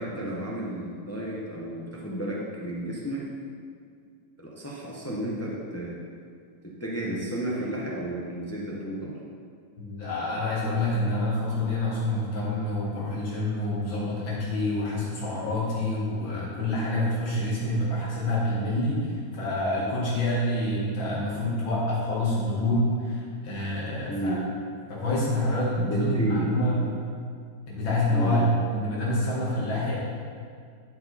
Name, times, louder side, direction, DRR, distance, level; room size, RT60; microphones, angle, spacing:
voice 1, 0.0-3.2 4.4-6.0 6.8-9.2 24.1-24.4 25.8-26.9 28.1-28.5, right 1 dB, 15° left, -4 dB, 0.5 m, -32 dB
voice 2, 9.8-24.4 24.9-26.9 27.7-28.4 28.7-30.0, left 1 dB, 80° left, -7 dB, 2.4 m, -27 dB
11.5 x 4.7 x 4.1 m, 2.1 s
omnidirectional pair, 2.1 m